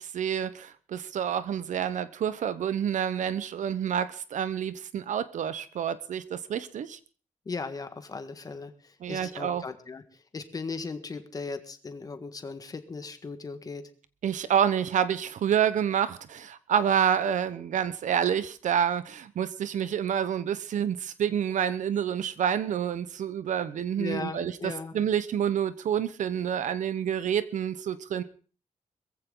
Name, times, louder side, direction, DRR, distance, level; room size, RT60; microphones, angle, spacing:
voice 1, 0.0-7.0 9.0-9.6 14.2-28.2, right 9 dB, 75° right, 1.1 m, -28 dB
voice 2, 7.4-10.0 10.3-13.8 24.0-24.9, left 4 dB, 30° left, 1.7 m, -37 dB
21.5 x 15.0 x 4.0 m
wide cardioid pair, 170°, 13 cm